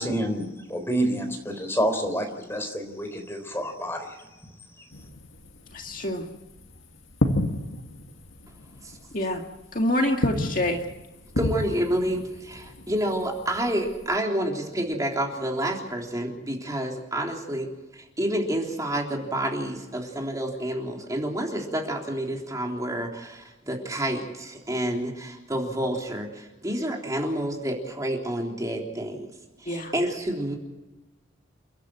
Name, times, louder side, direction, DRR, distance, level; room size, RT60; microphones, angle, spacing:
voice 1, 0.0-4.1, equal, 15° left, 5 dB, 3.8 m, -28 dB
sound 1, 4.9-14.2, left 1 dB, 85° left, 2.1 m, -33 dB
voice 2, 5.7-6.3 9.1-9.4 9.7-10.8 29.7-29.9, left 1 dB, 45° left, 3 dB, 1.9 m, -26 dB
voice 3, 11.4-29.3 29.6-30.6, right 1 dB, 15° right, 0 dB, 3.5 m, -29 dB
29.5 x 11.5 x 9.1 m, 1.1 s
head